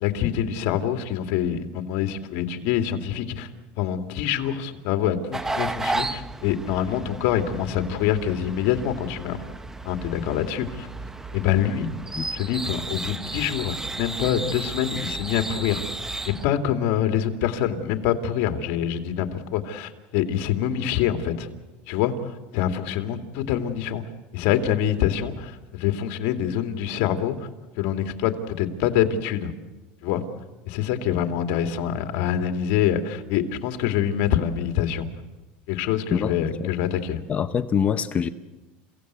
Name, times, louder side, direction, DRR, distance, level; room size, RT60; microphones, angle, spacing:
voice 1, 0.0-3.5 3.7-9.4 9.8-10.9 11.3-11.9 12.3-15.8 16.2-21.5 21.9-24.0 24.3-27.5 27.8-29.5 30.0-30.2 30.7-35.1 35.7-37.2, left 10 dB, 65° left, 6 dB, 2.3 m, -25 dB
sound 1, 5.3-16.4, right 2 dB, 10° right, 0.8 m, -33 dB
voice 2, 37.3-38.3, left 7 dB, 30° left, 11 dB, 0.8 m, -24 dB
29.5 x 17.0 x 8.2 m, 1.2 s
supercardioid pair, 135°, 5 cm